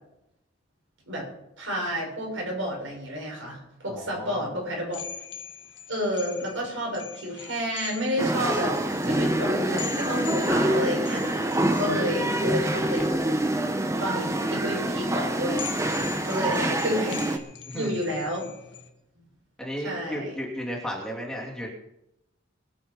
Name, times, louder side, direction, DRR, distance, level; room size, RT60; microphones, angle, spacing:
voice 1, 1.6-5.0 5.9-8.8 9.0-13.2 13.8-15.7 16.2-17.4 17.7-18.5 19.8-20.3, equal, 80° right, -1 dB, 7.1 m, -30 dB
voice 2, 3.9-4.5 12.3-12.4 16.4-16.6 17.7-17.9 19.6-21.7, equal, 5° left, -3 dB, 2.9 m, -34 dB
sound 1, 4.9-18.9, left 8 dB, 65° left, 1.5 m, -42 dB
sound 2, 8.2-17.4, right 1 dB, 15° right, 0.9 m, -26 dB
22.5 x 7.8 x 5.6 m, 0.87 s
head